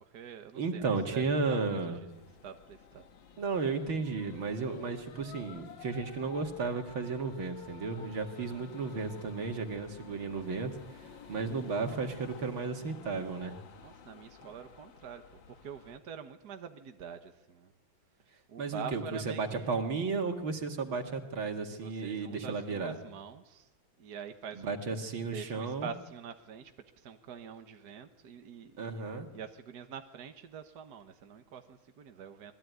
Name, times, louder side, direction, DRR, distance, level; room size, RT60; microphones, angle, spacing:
voice 1, 0.0-2.1 2.4-3.1 13.8-17.7 18.5-19.9 21.7-23.7 24.0-24.9 25.3-26.7 27.0-32.5, right 7 dB, 55° right, 6 dB, 1.8 m, -46 dB
voice 2, 0.5-2.0 3.4-13.6 18.6-23.0 24.5-25.9 28.8-29.3, right 4 dB, 85° right, 4 dB, 3.0 m, -34 dB
sound 1, 2.1-16.0, left 7 dB, 70° left, 2.2 m, -52 dB
27.0 x 21.0 x 9.5 m, 1.0 s
omnidirectional pair, 2.2 m